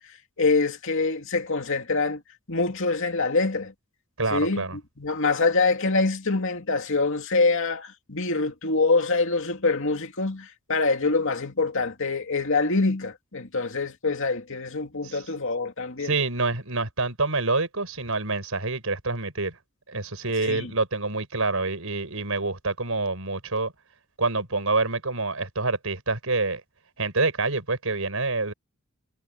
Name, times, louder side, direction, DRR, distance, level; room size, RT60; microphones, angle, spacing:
voice 1, 0.4-2.2 2.5-3.7 4.3-16.1 20.5-20.7, left 3 dB, 65° left, 2.5 m, -25 dB
voice 2, 4.2-4.8 15.0-15.2 16.0-19.6 19.9-23.7 24.2-26.6 27.0-28.5, right 3 dB, 70° right, 5.8 m, -27 dB
head